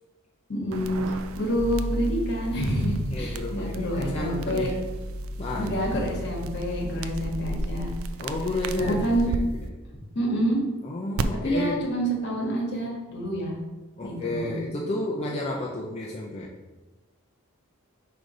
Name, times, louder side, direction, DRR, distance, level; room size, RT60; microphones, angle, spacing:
voice 1, 0.5-1.0 1.4-4.7 5.5-7.9 8.8-9.3 10.1-10.6 11.4-13.6 14.0-14.6, equal, 50° left, -1 dB, 1.5 m, -27 dB
sound 1, 0.7-9.4 11.2-11.3, right 4 dB, 65° right, 0.4 m, -36 dB
sound 2, 1.6-7.8, equal, 20° right, 1.0 m, -34 dB
voice 2, 3.1-4.8 5.4-5.9 8.2-9.6 10.8-11.9 14.0-16.5, left 2 dB, 30° left, -3 dB, 0.5 m, -31 dB
5.0 x 3.9 x 5.0 m, 1.2 s
head